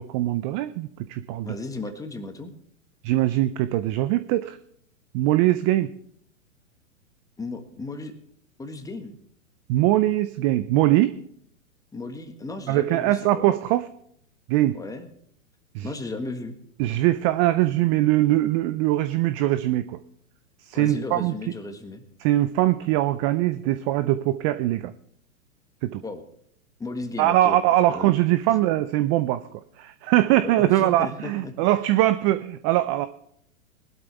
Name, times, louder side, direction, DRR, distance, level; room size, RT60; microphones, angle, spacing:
voice 1, 0.0-1.6 3.0-4.6 5.1-5.9 9.7-11.2 12.7-13.9 14.5-14.8 15.7-15.9 16.8-20.0 20.6-21.3 22.2-24.9 25.8-26.0 27.2-29.4 29.8-33.1, right 15 dB, 25° right, 14 dB, 0.4 m, -22 dB
voice 2, 1.4-2.5 7.4-8.1 8.6-9.2 11.9-13.6 14.7-15.1 15.8-16.6 20.7-22.0 26.0-26.2 26.8-28.1 30.4-31.5, left 2 dB, 10° left, 7 dB, 1.6 m, -35 dB
20.0 x 12.0 x 3.4 m, 0.66 s
hypercardioid pair, 120°, 41 cm